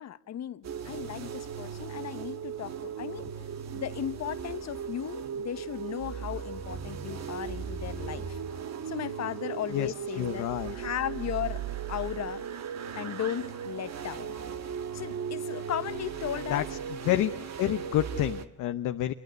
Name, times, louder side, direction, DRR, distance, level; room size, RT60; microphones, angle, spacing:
voice 1, 0.0-3.2 3.7-8.4 8.9-11.6 11.9-12.4 12.9-14.4 14.9-16.7, left 10 dB, 60° left, 1.1 m, -36 dB
sound 1, 0.6-18.5, right 7 dB, 60° right, 1.7 m, -37 dB
voice 2, 9.7-10.7 16.5-16.6 17.0-17.3 17.6-19.1, left 13 dB, 85° left, 0.9 m, -28 dB
27.0 x 23.0 x 8.0 m
cardioid pair, 90°, 30 cm